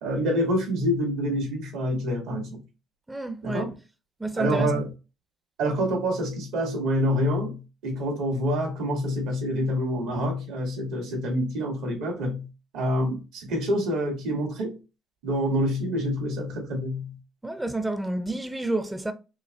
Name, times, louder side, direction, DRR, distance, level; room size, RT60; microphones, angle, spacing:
voice 1, 0.0-2.6 3.4-3.7 4.3-4.9 5.6-12.5 12.7-14.8 15.2-17.2, equal, 85° right, 2.1 m, -27 dB
voice 2, 3.1-3.7 4.2-4.8 17.4-19.1, right 2 dB, 10° right, 0.5 m, -29 dB
5.4 x 2.1 x 3.1 m
cardioid pair, 90°, 0 cm